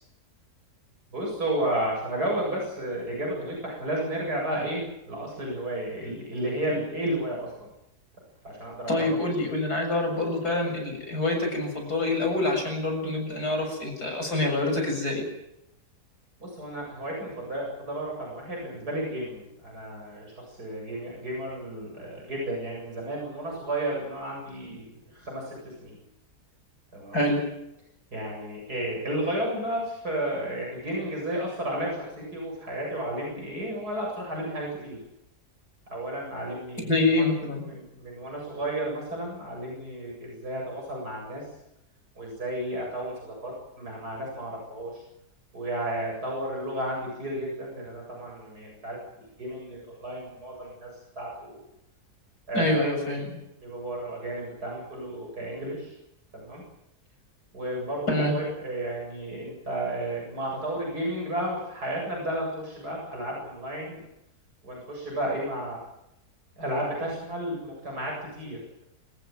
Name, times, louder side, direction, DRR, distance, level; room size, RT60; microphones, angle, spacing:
voice 1, 1.1-7.7 8.4-9.2 16.4-26.0 26.9-27.2 28.1-35.0 35.9-41.5 42.2-45.0 45.5-51.6 52.5-52.9 53.6-56.0 56.3-56.6 57.5-64.0 64.6-65.8 66.6-68.8, right 1 dB, 75° right, -2 dB, 8.5 m, -33 dB
voice 2, 8.9-15.2 27.1-27.4 36.9-37.6 52.5-53.3 58.1-58.3, left 2 dB, 75° left, 3 dB, 7.8 m, -26 dB
27.5 x 15.5 x 9.3 m, 0.87 s
omnidirectional pair, 1.7 m